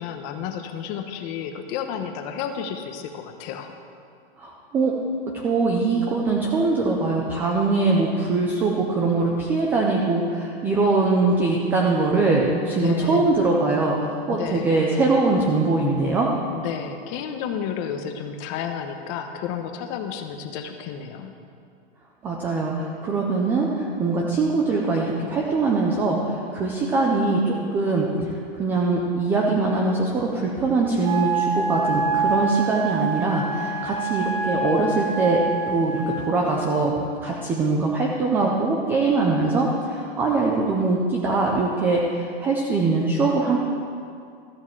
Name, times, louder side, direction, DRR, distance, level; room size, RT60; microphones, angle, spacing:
voice 1, 0.0-3.7 12.8-13.2 14.3-14.7 16.5-21.3, left 8 dB, 30° left, 6 dB, 0.9 m, -31 dB
voice 2, 4.4-4.9 5.3-16.3 22.2-28.1 28.6-36.9 37.2-43.6, right 3 dB, 5° right, -1 dB, 0.3 m, -22 dB
Wind instrument woodwind instrument, 31.0-36.2, right 3 dB, 35° right, 1.7 m, -26 dB
13.5 x 7.2 x 7.7 m, 2.4 s
supercardioid pair, 160°, 32 cm